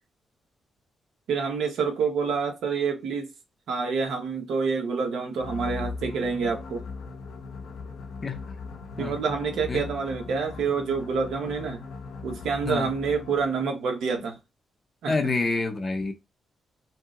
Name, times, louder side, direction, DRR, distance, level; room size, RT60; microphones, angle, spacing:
voice 1, 1.3-3.3 3.7-6.8 9.0-11.8 12.2-14.4 15.0-15.2, right 5 dB, 75° right, 0.9 m, -27 dB
sound 1, 5.4-13.6, left 4 dB, 75° left, 0.5 m, -39 dB
voice 2, 15.1-16.1, left 3 dB, 25° left, 0.6 m, -27 dB
2.8 x 2.0 x 3.5 m
wide cardioid pair, 165°, 0 cm